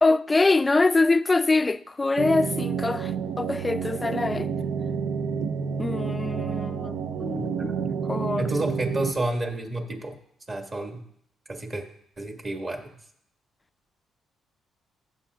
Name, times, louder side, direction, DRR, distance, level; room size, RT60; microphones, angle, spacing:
voice 1, 0.0-4.5 5.8-8.5, left 3 dB, 20° left, 0.4 m, -24 dB
sound 1, 2.2-9.1, right 6 dB, 80° right, 0.5 m, -29 dB
voice 2, 7.4-7.9 8.4-10.2 10.5-11.0 11.5-11.8 12.2-12.8, right 2 dB, 35° right, 1.8 m, -30 dB
16.0 x 7.5 x 2.4 m
cardioid pair, 90°, 0 cm